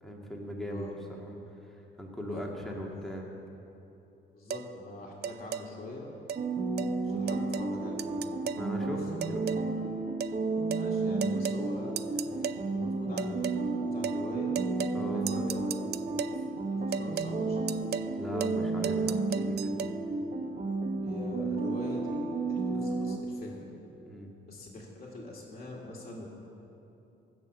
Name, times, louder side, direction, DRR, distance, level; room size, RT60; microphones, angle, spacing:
voice 1, 0.0-0.9 1.2-1.3 1.6-3.3 8.5-9.1 14.9-15.3 18.2-19.8 24.0-24.3, equal, ahead, -1 dB, 2.0 m, -38 dB
voice 2, 2.3-3.1 4.3-6.1 7.0-8.3 9.1-9.7 10.8-14.6 15.1-15.7 16.2-16.3 16.7-17.6 21.0-23.6 24.5-26.3, left 2 dB, 30° left, -4 dB, 2.0 m, -44 dB
sound 1, 4.5-4.7 5.2-5.7 6.3-6.4 6.8-6.9 7.3-7.7 8.0-8.7 9.2-9.7 10.2-10.4 10.7-10.9 11.2-11.6 12.0-12.6 13.2-13.6 14.0-14.2 14.5-15.0 15.3-16.4 16.9-17.3 17.7-18.1 18.4-18.6 18.8-19.9, right 8 dB, 55° right, 0.4 m, -35 dB
sound 2, 6.3-23.2, right 3 dB, 35° right, 1.1 m, -32 dB
15.5 x 6.0 x 6.7 m, 2.9 s
cardioid pair, 90°, 20 cm